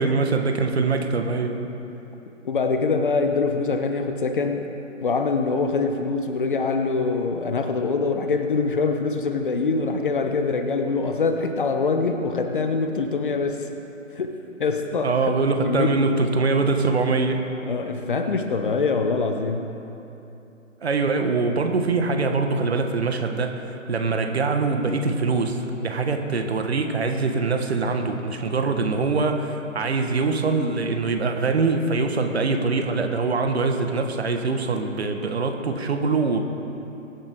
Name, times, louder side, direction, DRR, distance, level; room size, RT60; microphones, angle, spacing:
voice 1, 0.0-1.6 15.0-17.5 20.8-36.4, right 3 dB, 50° right, 5 dB, 1.4 m, -23 dB
voice 2, 2.4-4.6 5.0-13.7 14.1-15.3 15.6-15.9 17.6-19.8, left 4 dB, 40° left, 6 dB, 1.0 m, -24 dB
22.5 x 9.6 x 3.7 m, 2.9 s
figure-of-eight pair, 150°, 40 cm